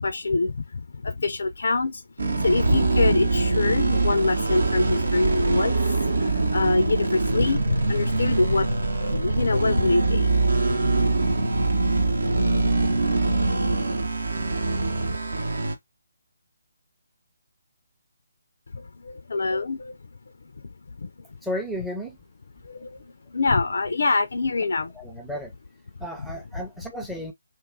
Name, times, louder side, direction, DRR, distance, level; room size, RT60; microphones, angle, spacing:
voice 1, 0.0-2.0 2.4-10.4 10.7-10.8 18.7-20.0 21.0-21.1 22.6-24.9, left 3 dB, 60° left, 0.4 m, -25 dB
sound 1, 2.2-15.8, right 3 dB, 65° right, 0.8 m, -23 dB
voice 2, 21.4-22.2 24.9-25.5 26.0-27.3, equal, ahead, 0.6 m, -33 dB
2.8 x 2.4 x 3.5 m
figure-of-eight pair, 145°, 0 cm